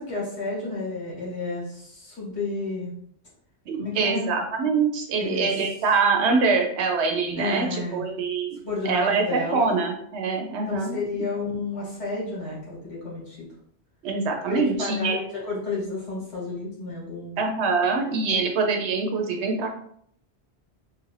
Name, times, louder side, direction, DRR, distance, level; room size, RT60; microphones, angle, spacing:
voice 1, 0.0-2.9 3.8-4.3 5.2-5.6 7.3-8.0 8.6-9.8 10.7-13.5 14.5-17.4, left 3 dB, 85° left, -5 dB, 1.7 m, -31 dB
voice 2, 3.7-8.6 8.8-11.0 14.0-15.2 17.4-19.7, right 4 dB, 90° right, 3 dB, 0.9 m, -24 dB
3.1 x 2.4 x 3.2 m, 0.65 s
omnidirectional pair, 1.1 m